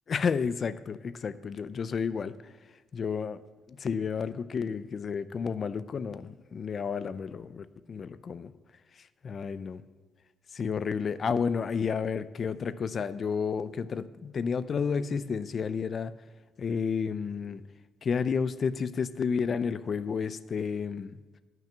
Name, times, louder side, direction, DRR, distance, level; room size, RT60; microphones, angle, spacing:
voice 1, 0.1-2.4 2.9-3.4 3.7-8.5 9.2-9.8 10.5-16.1 16.6-17.6 18.0-21.2, left 6 dB, 50° left, 15 dB, 0.5 m, -31 dB
9.1 x 5.8 x 7.2 m, 1.3 s
cardioid pair, 80°, 0 cm